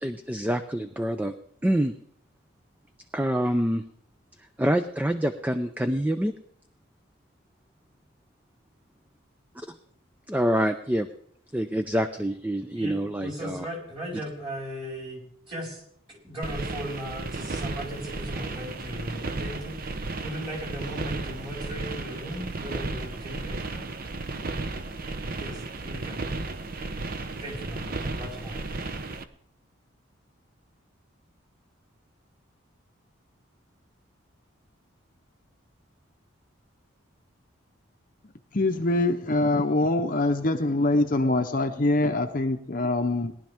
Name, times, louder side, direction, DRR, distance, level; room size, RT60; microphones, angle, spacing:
voice 1, 0.0-1.3 1.6-1.9 3.1-3.8 4.6-6.3 10.3-11.1 11.5-13.7 23.8-23.9, right 1 dB, 10° right, 8 dB, 0.4 m, -26 dB
voice 2, 12.7-15.8 16.1-23.6 25.4-26.2 27.4-28.9, equal, 25° right, -4 dB, 4.7 m, -37 dB
sound 1, 16.4-29.2, right 3 dB, 45° right, 0.7 m, -34 dB
voice 3, 38.5-43.3, left 2 dB, 40° left, 5 dB, 0.7 m, -24 dB
18.5 x 11.5 x 3.5 m, 0.66 s
head